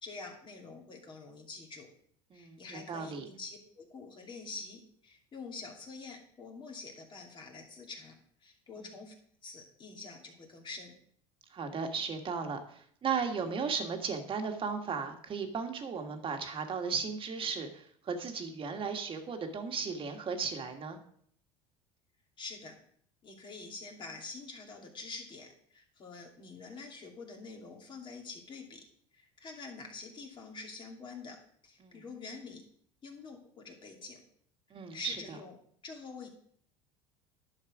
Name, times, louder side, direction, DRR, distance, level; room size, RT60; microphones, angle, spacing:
voice 1, 0.0-1.9 2.3-8.1 8.4-9.1 9.4-10.9 22.4-22.7 23.2-28.8 29.1-31.4 31.6-32.6 33.0-34.2 34.9-35.6 35.8-36.3, left 4 dB, 35° left, 1 dB, 2.6 m, -46 dB
voice 2, 2.3-3.3 8.8-8.9 11.5-21.0 31.8-32.0 34.7-35.4, right 5 dB, 35° right, 5 dB, 1.7 m, -36 dB
11.0 x 6.4 x 4.9 m, 0.62 s
supercardioid pair, 95°, 15 cm